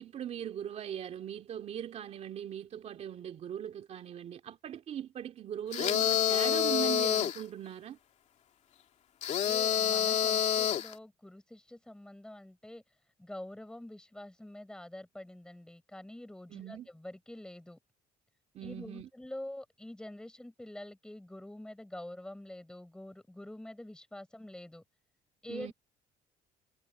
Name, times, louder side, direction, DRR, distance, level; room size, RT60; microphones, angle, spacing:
voice 1, 0.0-8.0 16.5-16.9 18.5-19.1 25.5-25.7, right 10 dB, 45° right, 2.6 m, -40 dB
sound 1, 5.7-7.4 9.2-10.9, left 9 dB, 50° left, 2.4 m, -28 dB
voice 2, 9.5-12.8 13.2-17.8 18.6-24.8 25.4-25.7, left 1 dB, 5° left, 7.0 m, -46 dB
cardioid pair, 145°, 15 cm